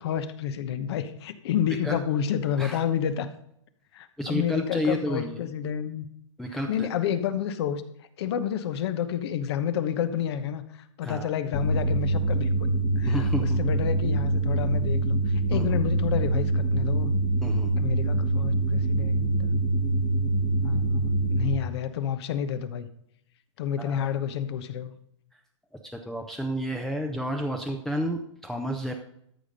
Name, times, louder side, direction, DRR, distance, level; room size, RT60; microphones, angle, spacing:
voice 1, 0.0-3.3 3.9-6.1 6.5-7.8 8.2-12.7 13.0-17.1 17.8-19.5 20.6-22.9 23.6-24.9, left 9 dB, 55° left, 11 dB, 1.0 m, -30 dB
voice 2, 4.2-5.4 6.4-6.9 11.0-11.3 13.0-13.6 15.5-15.8 17.4-17.7 23.8-24.1 25.7-28.9, equal, ahead, 3 dB, 0.7 m, -31 dB
sound 1, 11.5-21.5, right 2 dB, 35° left, 1.5 m, -24 dB
13.0 x 5.0 x 5.3 m, 0.72 s
hypercardioid pair, 135°, 16 cm